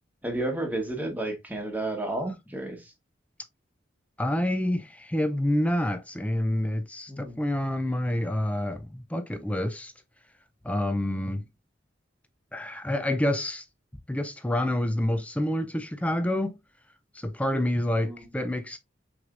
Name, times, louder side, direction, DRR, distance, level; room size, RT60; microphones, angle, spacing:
voice 1, 0.2-2.8 7.1-7.4 18.0-18.2, right 2 dB, 10° right, 1.2 m, -31 dB
voice 2, 4.2-9.9 10.6-11.4 12.5-13.6 14.1-16.6 17.1-18.8, left 1 dB, 5° left, 0.4 m, -28 dB
6.1 x 3.2 x 2.5 m
head